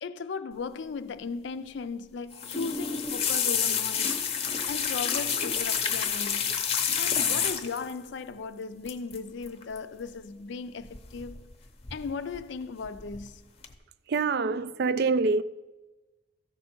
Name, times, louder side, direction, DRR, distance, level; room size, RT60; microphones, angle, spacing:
voice 1, 0.0-4.2 4.7-6.5 7.0-11.4 11.9-13.5, left 5 dB, 60° left, 0.4 m, -37 dB
sound 1, 2.3-7.9 8.9-9.2 9.4-9.8 10.9-11.5 11.8-12.4 12.9-13.2 13.6-13.7, left 7 dB, 30° left, 0.7 m, -29 dB
voice 2, 14.1-15.4, right 4 dB, 50° right, 0.3 m, -25 dB
14.5 x 6.3 x 4.4 m
head